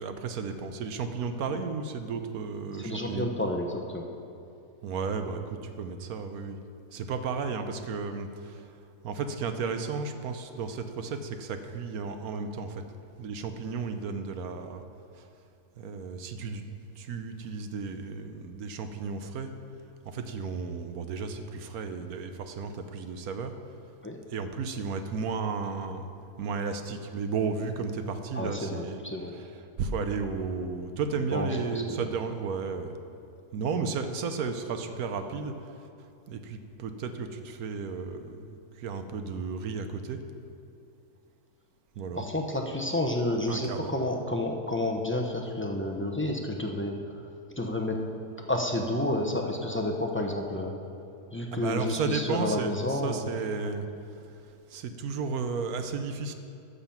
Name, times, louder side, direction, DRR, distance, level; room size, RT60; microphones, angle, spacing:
voice 1, 0.0-3.3 4.8-6.6 6.9-8.7 9.0-12.8 13.2-14.8 15.2-15.3 15.8-16.6 17.0-19.5 20.0-23.5 24.3-26.1 26.4-29.0 29.3-29.5 29.8-32.9 33.5-35.5 36.3-40.2 42.0-42.3 43.5-43.9 51.5-53.9 54.7-56.3, right 5 dB, 75° right, 8 dB, 1.1 m, -33 dB
voice 2, 2.8-4.0 24.0-24.2 28.3-29.3 31.3-32.0 42.1-46.9 47.6-48.0 48.5-50.8 51.3-53.2, left 1 dB, 15° left, 1 dB, 0.5 m, -30 dB
13.0 x 6.9 x 5.8 m, 2.6 s
omnidirectional pair, 1.7 m